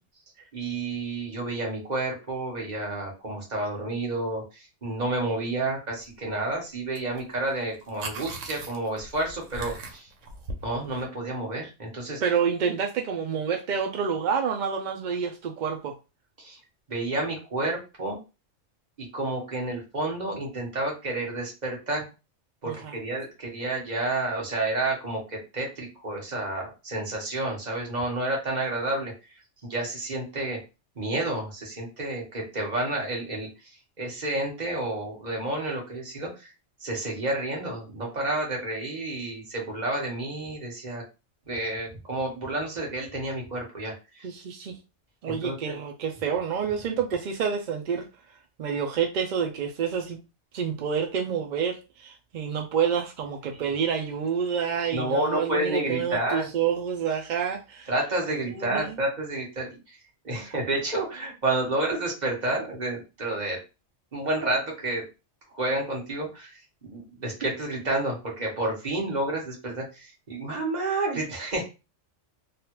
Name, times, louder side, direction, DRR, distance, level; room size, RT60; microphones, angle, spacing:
voice 1, 0.5-10.1 10.6-12.2 16.4-16.6 16.9-18.2 19.0-22.0 22.6-29.1 29.6-30.6 31.0-33.5 34.0-36.5 36.8-41.0 41.5-44.3 45.3-45.7 53.6-53.7 54.9-56.5 57.9-60.0 60.2-63.6 64.1-65.0 65.5-71.7, right 2 dB, 35° right, 1.2 m, -30 dB
sound 1, 7.0-7.2 7.5-11.1, right 2 dB, 80° right, 1.1 m, -39 dB
voice 2, 12.2-15.9 22.6-23.0 44.2-44.8 45.2-48.1 48.6-50.2 50.5-57.9 58.5-59.0, right 7 dB, 65° right, 0.4 m, -28 dB
3.2 x 2.3 x 2.9 m
omnidirectional pair, 1.3 m